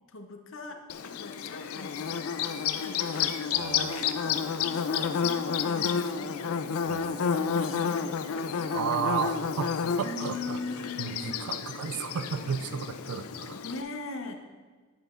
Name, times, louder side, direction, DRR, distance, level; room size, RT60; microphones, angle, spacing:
voice 1, 0.1-2.3 2.8-3.2 3.8-6.7 7.3-8.8 10.0-11.6 13.5-14.6, left 3 dB, 60° left, 5 dB, 0.7 m, -41 dB
Bird / Buzz, 0.9-13.8, left 6 dB, 90° left, 0.4 m, -30 dB
voice 2, 3.5-4.1 6.9-7.1 8.7-10.6 11.0-13.6, right 7 dB, 90° right, 11 dB, 0.4 m, -33 dB
8.9 x 7.7 x 2.5 m, 1.4 s
head